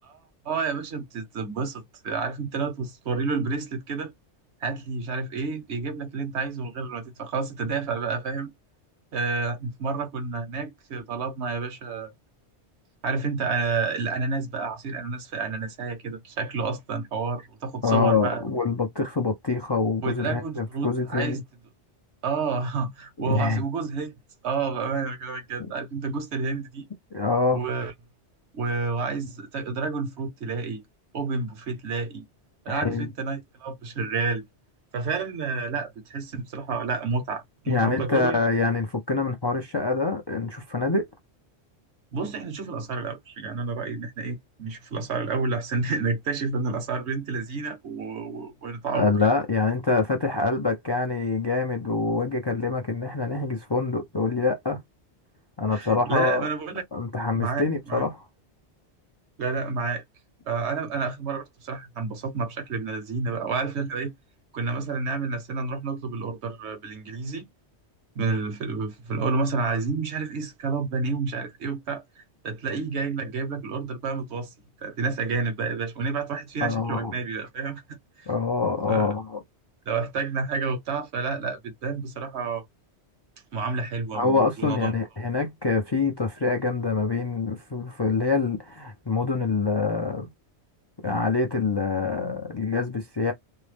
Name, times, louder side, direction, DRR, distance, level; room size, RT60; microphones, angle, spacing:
voice 1, 0.4-4.1 4.6-8.5 9.1-12.1 13.0-18.4 20.0-21.4 22.2-24.1 24.4-26.9 27.5-27.9 28.5-30.8 31.1-32.2 32.6-34.5 34.9-38.4 42.1-49.1 55.7-56.8 57.3-58.0 59.4-60.0 60.5-64.1 64.5-67.5 68.1-72.0 72.4-74.5 74.8-78.3 78.9-79.1 79.9-82.6 83.5-84.9, right 4 dB, 75° right, 1.1 m, -30 dB
voice 2, 17.8-21.4 23.3-23.6 27.1-27.6 32.7-33.1 37.7-41.1 48.9-54.8 55.6-56.4 56.9-58.2 76.6-77.1 78.3-79.4 84.1-90.3 91.0-93.3, left 4 dB, 40° left, 0.3 m, -25 dB
2.7 x 2.0 x 3.2 m
omnidirectional pair, 1.2 m